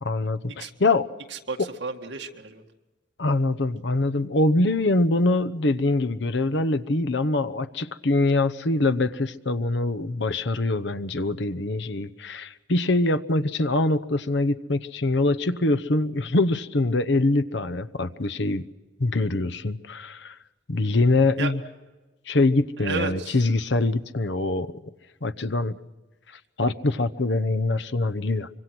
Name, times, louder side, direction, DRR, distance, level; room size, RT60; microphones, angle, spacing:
voice 1, 0.0-1.1 3.2-18.6 19.0-20.4 20.7-21.6 22.3-24.7 25.2-25.8 26.6-28.5, left 2 dB, 65° left, 10 dB, 0.9 m, -24 dB
voice 2, 1.3-2.6 21.4-21.5 22.8-23.4, right 4 dB, 65° right, 3 dB, 2.0 m, -32 dB
25.0 x 24.5 x 6.1 m, 1.2 s
head